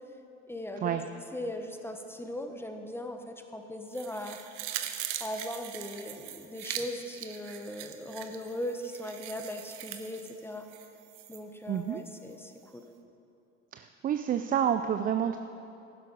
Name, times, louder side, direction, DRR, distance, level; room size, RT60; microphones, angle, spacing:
voice 1, 0.5-1.0 1.3-4.4 5.2-10.7 11.3-12.8, left 1 dB, 5° left, 5 dB, 1.1 m, -39 dB
sound 1, 3.9-11.4 11.8-11.9, right 11 dB, 65° right, 1.0 m, -41 dB
voice 2, 11.7-12.0 13.7-15.4, right 9 dB, 25° right, 9 dB, 0.4 m, -29 dB
12.0 x 10.5 x 5.3 m, 2.7 s
hypercardioid pair, 75°, 37 cm